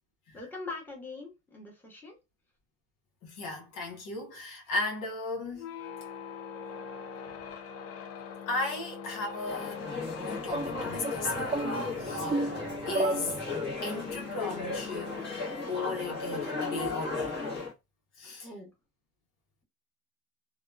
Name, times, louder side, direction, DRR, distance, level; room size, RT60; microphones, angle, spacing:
voice 1, 0.3-2.2 18.4-18.7, left 3 dB, 5° left, 1.1 m, -42 dB
voice 2, 3.2-5.7 8.5-9.9 10.2-12.5 12.9-15.3 15.7-17.4 18.2-18.5, left 2 dB, 70° left, 1.0 m, -36 dB
sound 1, 5.5-15.9, left 6 dB, 50° left, 0.6 m, -43 dB
sound 2, 9.4-17.7, left 3 dB, 35° left, 1.1 m, -35 dB
sound 3, 10.5-13.9, right 2 dB, 20° right, 0.5 m, -33 dB
2.8 x 2.3 x 2.2 m
cardioid pair, 110°, 32 cm